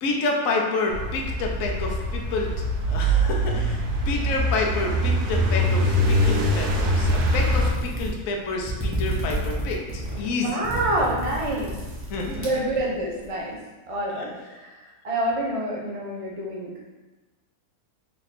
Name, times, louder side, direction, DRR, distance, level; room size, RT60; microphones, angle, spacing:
voice 1, 0.0-10.7 12.1-12.7 14.1-14.3, left 3 dB, 70° left, 0 dB, 1.0 m, -29 dB
sound 1, 0.9-7.7, equal, 85° right, 1.1 m, -23 dB
sound 2, 7.1-13.2, right 1 dB, 10° right, 0.7 m, -31 dB
voice 2, 10.2-11.7 12.3-13.6 13.9-14.7 15.0-16.7, right 1 dB, 45° right, -4 dB, 0.4 m, -27 dB
3.3 x 2.8 x 4.1 m, 1.2 s
omnidirectional pair, 1.6 m